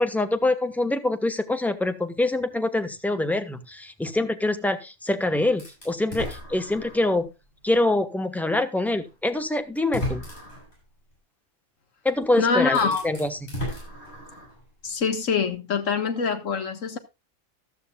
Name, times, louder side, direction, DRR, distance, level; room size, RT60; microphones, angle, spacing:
voice 1, 0.0-7.3 7.6-10.2 12.0-12.8 13.0-13.4, left 2 dB, ahead, 0.9 m, -25 dB
sound 1, 5.6-7.2 7.8-7.9 9.1-9.2 9.8-10.7 12.2-12.3 12.7-14.6, left 1 dB, 50° left, 7.6 m, -35 dB
voice 2, 12.4-13.0 14.8-17.0, left 5 dB, 65° left, 1.8 m, -24 dB
14.0 x 12.5 x 2.3 m
omnidirectional pair, 1.4 m